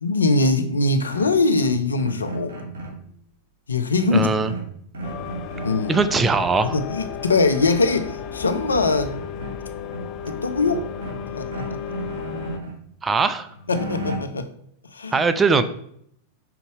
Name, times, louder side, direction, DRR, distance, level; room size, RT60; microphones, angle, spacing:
voice 1, 0.0-2.5 3.7-4.3 5.6-6.0 6.7-9.2 10.3-10.8 11.4-11.8 13.7-14.5 14.9-15.2, left 3 dB, 80° left, 9 dB, 0.6 m, -22 dB
sound 1, 1.1-3.0 4.0-5.8 6.1-6.5 7.8-7.9 8.2-9.5 9.9-11.2 11.5-12.8 13.2-14.2, right 2 dB, 70° right, 2.4 m, -34 dB
voice 2, 4.1-4.5 5.9-6.8 13.0-13.5 15.1-15.6, right 4 dB, 20° right, 11 dB, 0.5 m, -20 dB
sound 2, 5.0-12.6, left 8 dB, 45° left, 0.6 m, -34 dB
5.9 x 4.0 x 4.7 m, 0.67 s
figure-of-eight pair, 95°, 0 cm